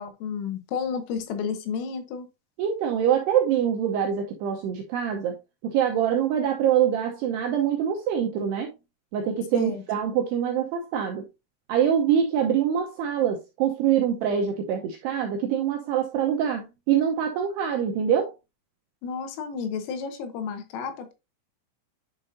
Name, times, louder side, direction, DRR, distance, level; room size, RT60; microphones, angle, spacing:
voice 1, 0.0-2.3 9.5-9.8 19.0-21.1, left 6 dB, 85° left, 3.9 m, -31 dB
voice 2, 2.6-5.4 5.6-8.7 9.1-11.2 11.7-18.3, right 9 dB, 90° right, 2.4 m, -24 dB
9.9 x 5.4 x 2.6 m
omnidirectional pair, 5.8 m